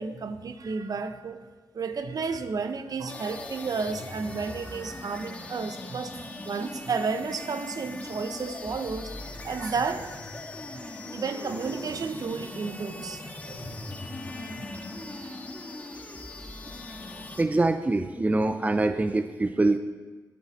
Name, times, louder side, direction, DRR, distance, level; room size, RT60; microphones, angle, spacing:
voice 1, 0.0-1.4 1.7-9.1 9.4-10.1 11.1-13.2 13.5-13.7 14.6-14.7, right 4 dB, 60° right, 9 dB, 0.9 m, -32 dB
sound 1, 3.1-17.4, left 2 dB, 20° left, 1.7 m, -40 dB
voice 2, 17.4-19.8, right 2 dB, 20° right, 9 dB, 0.5 m, -24 dB
11.5 x 11.0 x 4.2 m, 1.3 s
cardioid pair, 75°, 7 cm